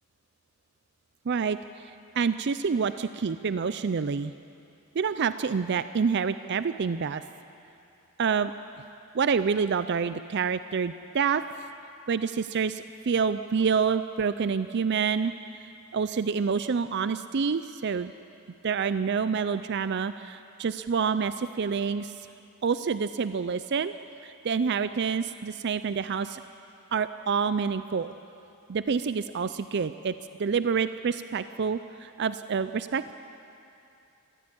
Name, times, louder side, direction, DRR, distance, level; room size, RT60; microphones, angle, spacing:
voice 1, 1.3-4.3 4.9-7.2 8.2-8.5 9.1-11.4 12.1-15.3 15.6-18.1 18.6-22.1 22.6-23.9 24.2-26.4 26.9-28.1 28.7-30.1 30.4-33.1, right 6 dB, 50° right, 12 dB, 0.4 m, -27 dB
22.5 x 15.0 x 8.7 m, 2.8 s
head